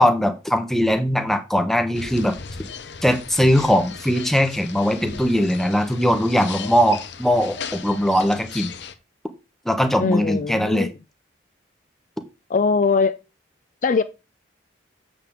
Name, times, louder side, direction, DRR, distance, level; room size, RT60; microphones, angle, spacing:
voice 1, 0.0-2.4 3.0-8.7 9.7-10.9, equal, ahead, 0.8 m, -20 dB
sound 1, 1.9-8.9, left 6 dB, 65° left, 0.8 m, -37 dB
voice 2, 10.0-10.9 12.5-13.2 13.8-14.0, left 4 dB, 45° left, 0.4 m, -20 dB
7.5 x 6.8 x 3.6 m
head